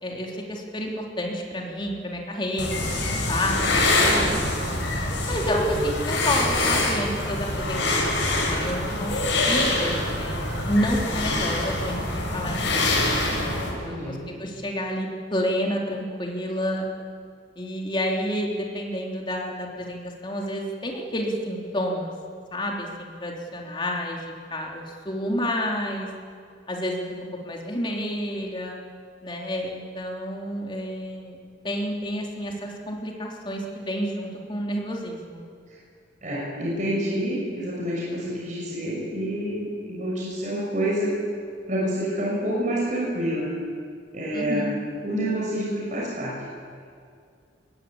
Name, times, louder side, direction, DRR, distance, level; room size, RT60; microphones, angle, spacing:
voice 1, 0.0-4.4 5.3-9.2 9.4-13.2 13.8-16.9 17.6-22.1 22.5-26.1 26.7-27.0 27.4-28.8 29.2-31.4 31.6-35.4 44.3-44.9, equal, 25° left, 0 dB, 3.2 m, -29 dB
sound 1, 2.6-13.7, left 2 dB, 75° left, 6.4 m, -25 dB
voice 2, 13.6-14.2 35.7-35.8 36.2-41.1 41.7-43.5 44.1-44.7 45.0-46.3, equal, 40° right, -5 dB, 6.1 m, -28 dB
22.0 x 19.0 x 8.7 m, 2.3 s
head